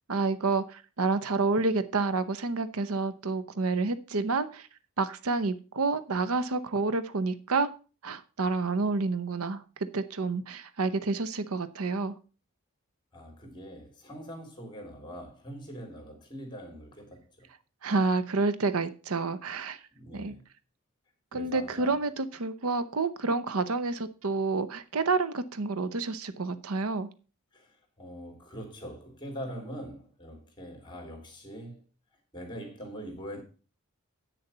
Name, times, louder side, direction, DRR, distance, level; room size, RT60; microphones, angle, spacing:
voice 1, 0.1-4.7 5.0-7.7 8.0-12.2 17.8-19.8 20.1-20.3 21.3-27.1, right 3 dB, 75° right, 0.8 m, -29 dB
voice 2, 13.1-17.5 19.9-20.4 21.3-22.0 27.5-31.8 32.3-33.4, equal, 20° left, 3.1 m, -43 dB
8.6 x 6.7 x 5.5 m
head